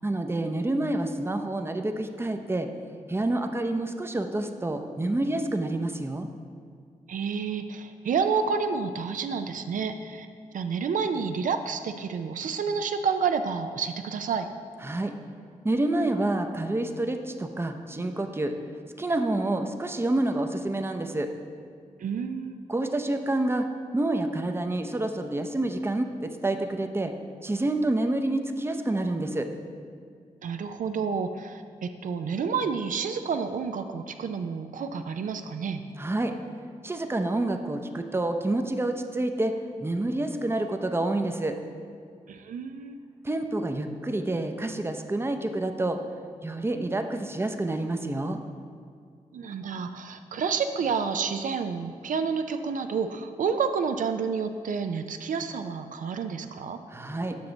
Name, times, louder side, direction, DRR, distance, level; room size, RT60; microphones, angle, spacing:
voice 1, 0.0-2.7 3.1-6.3 14.8-15.1 15.6-18.5 19.0-21.3 22.7-23.7 23.9-27.1 27.4-29.5 36.0-36.3 36.8-39.5 39.8-41.6 43.2-46.0 46.4-48.4 56.9-57.4, right 2 dB, 15° right, 6 dB, 0.6 m, -28 dB
voice 2, 7.1-10.3 10.5-14.5 22.0-22.6 30.4-35.9 42.3-43.0 49.3-56.8, right 5 dB, 75° right, 8 dB, 0.4 m, -29 dB
6.9 x 5.9 x 3.8 m, 2.2 s
cardioid pair, 50°, 14 cm